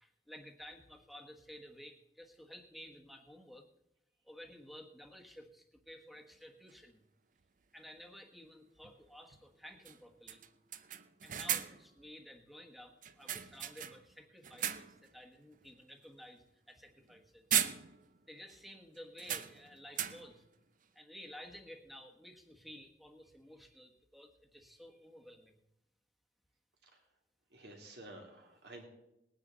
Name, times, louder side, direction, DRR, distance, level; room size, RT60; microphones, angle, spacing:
voice 1, 0.0-3.7 4.2-7.0 7.7-10.4 11.2-17.5 18.3-20.4 20.9-25.6, equal, ahead, 4 dB, 1.3 m, -53 dB
sound 1, 6.7-6.8 8.8-9.0 9.3-9.4 9.8-10.0 10.3-11.9 13.0-14.1 14.4-15.1 15.5-15.7 17.0-17.2 17.5-18.2 18.5-18.6 19.2-20.4, right 10 dB, 50° right, 0.6 m, -37 dB
voice 2, 27.5-28.8, right 1 dB, 65° right, 1 dB, 3.1 m, -52 dB
20.0 x 9.6 x 4.0 m, 0.86 s
head